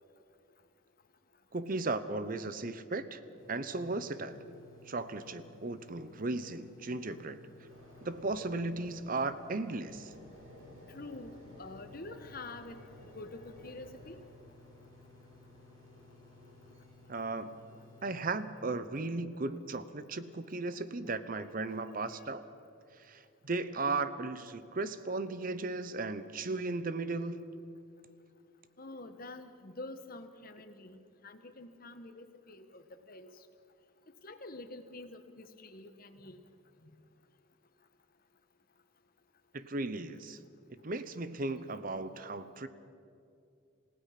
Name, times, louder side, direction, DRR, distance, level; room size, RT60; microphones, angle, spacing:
voice 1, 1.5-3.2 3.5-4.4 4.9-7.4 8.0-10.1 17.1-17.6 18.0-22.4 23.0-27.5 39.5-40.4 40.8-42.7, right 3 dB, 45° right, 13 dB, 0.8 m, -36 dB
sound 1, 3.4-18.1, left 2 dB, 20° left, 3.4 m, -58 dB
sound 2, 7.7-18.6 19.1-19.4, left 1 dB, 80° right, 6.8 m, -57 dB
voice 2, 10.9-12.8 13.1-14.2 21.9-22.2 28.8-33.5 34.2-36.4, left 2 dB, 45° left, 9 dB, 1.3 m, -47 dB
27.5 x 16.5 x 5.9 m, 2.6 s
head